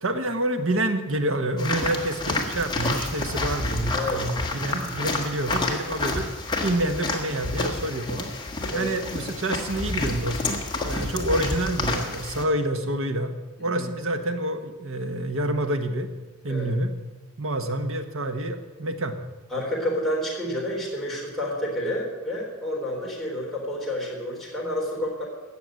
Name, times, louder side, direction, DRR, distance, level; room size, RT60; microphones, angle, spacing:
voice 1, 0.0-6.3 6.6-8.3 8.7-13.3 13.6-16.1 16.4-16.9 17.4-19.2, right 1 dB, 60° right, 7 dB, 1.3 m, -27 dB
sound 1, 1.6-12.4, left 2 dB, 20° left, 1.7 m, -29 dB
voice 2, 19.5-25.2, left 1 dB, ahead, -5 dB, 4.1 m, -29 dB
16.0 x 6.8 x 9.0 m, 1.2 s
head